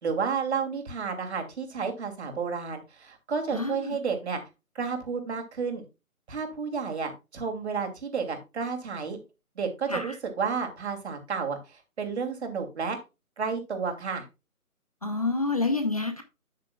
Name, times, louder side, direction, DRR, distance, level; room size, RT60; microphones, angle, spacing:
voice 1, 0.0-4.4 4.7-5.8 6.3-9.2 9.6-13.0 13.4-14.3, right 5 dB, 45° right, 5 dB, 2.7 m, -31 dB
voice 2, 3.5-4.0 9.9-10.1 15.0-16.2, left 3 dB, 25° left, 7 dB, 0.7 m, -28 dB
9.3 x 8.4 x 2.3 m, 0.26 s
figure-of-eight pair, 150°, 44 cm